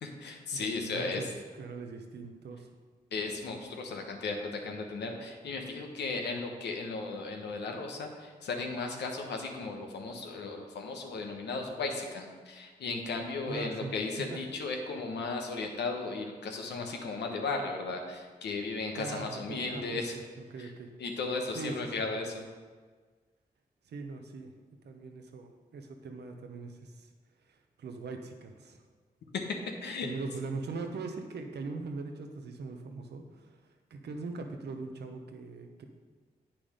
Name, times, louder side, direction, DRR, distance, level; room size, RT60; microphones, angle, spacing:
voice 1, 0.0-1.2 3.1-20.1 20.6-20.7 21.0-22.4 29.8-30.1, left 3 dB, 85° left, 2 dB, 1.1 m, -35 dB
voice 2, 0.5-2.7 13.5-13.9 14.3-14.4 19.0-20.1 20.4-20.9 21.5-22.1 23.9-24.5 24.8-27.1 27.5-28.8 30.0-33.6 33.9-35.8, right 3 dB, 75° right, 5 dB, 1.0 m, -41 dB
8.6 x 6.0 x 5.0 m, 1.5 s
supercardioid pair, 40°, 17 cm